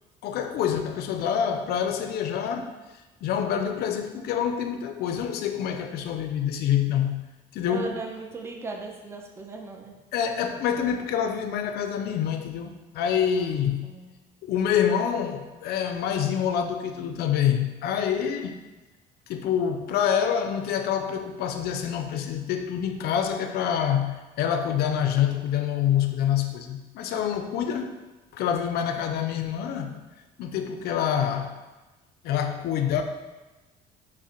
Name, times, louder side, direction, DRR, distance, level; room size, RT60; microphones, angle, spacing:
voice 1, 0.2-2.8 3.2-7.2 7.5-8.0 10.1-13.9 14.4-18.6 19.3-28.0 28.3-30.0 30.4-31.5 32.2-33.0, left 8 dB, 70° left, 6 dB, 0.4 m, -26 dB
voice 2, 7.7-9.9 13.4-13.5 13.8-14.1, right 3 dB, 15° right, 1 dB, 0.4 m, -37 dB
5.6 x 2.1 x 2.8 m, 1.1 s
cardioid pair, 110°, 17 cm